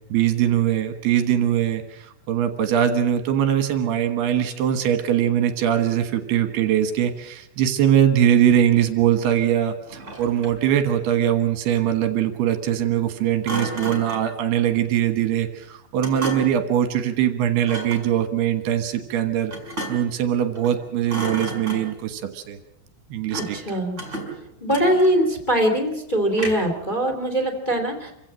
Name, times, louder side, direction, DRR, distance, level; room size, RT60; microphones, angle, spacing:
voice 1, 0.1-19.5 19.9-22.6 23.1-23.6, right 10 dB, 65° right, 8 dB, 2.9 m, -21 dB
Thump thud, 9.9-10.7 13.4-14.3 16.0-16.7 17.6-18.1 19.5-20.2 20.5-20.8 21.1-22.1 23.3-23.7 24.0-25.3 26.3-26.8, right 1 dB, 15° right, 3.7 m, -33 dB
voice 2, 23.3-24.0 24.6-28.1, equal, 15° left, 3 dB, 1.8 m, -22 dB
27.0 x 16.0 x 7.6 m, 0.78 s
omnidirectional pair, 5.7 m